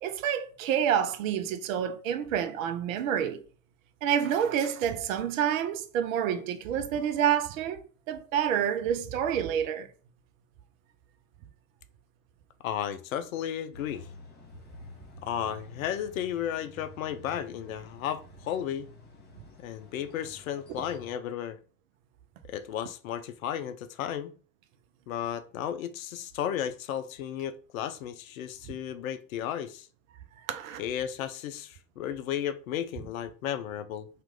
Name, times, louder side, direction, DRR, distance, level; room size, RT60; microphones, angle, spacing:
voice 1, 0.0-3.4 4.0-9.9 30.5-30.8, right 9 dB, 65° right, 0.6 m, -28 dB
voice 2, 12.6-14.1 15.2-18.9 19.6-21.6 22.5-24.3 25.1-29.9 30.8-34.1, left 10 dB, 70° left, 0.5 m, -34 dB
sound 1, 13.7-21.1, left 1 dB, 25° left, 1.4 m, -50 dB
3.0 x 2.4 x 3.5 m
figure-of-eight pair, 75°, 44 cm